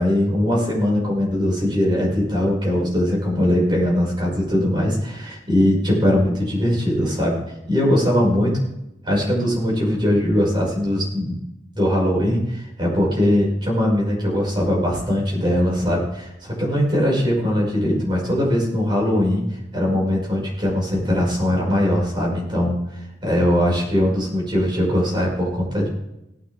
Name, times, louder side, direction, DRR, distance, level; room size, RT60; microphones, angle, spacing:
voice 1, 0.0-7.4 7.7-8.5 9.0-11.4 11.7-19.4 19.7-25.9, equal, 25° right, -3 dB, 5.4 m, -20 dB
17.5 x 9.1 x 3.5 m, 0.87 s
head